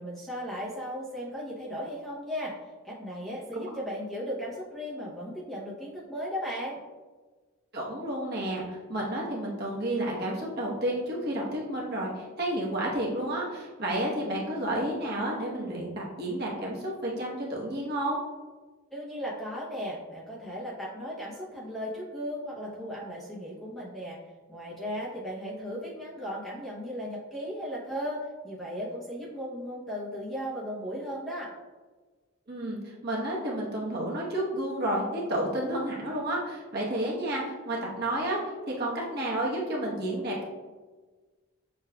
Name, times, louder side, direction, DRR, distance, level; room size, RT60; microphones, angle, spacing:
voice 1, 0.0-2.6 2.8-6.8 18.9-24.2 24.5-31.5, equal, ahead, -8 dB, 0.6 m, -36 dB
voice 2, 7.7-18.2 32.5-38.4 38.7-40.4, right 1 dB, 45° right, -4 dB, 0.9 m, -31 dB
6.6 x 2.3 x 2.3 m, 1.3 s
head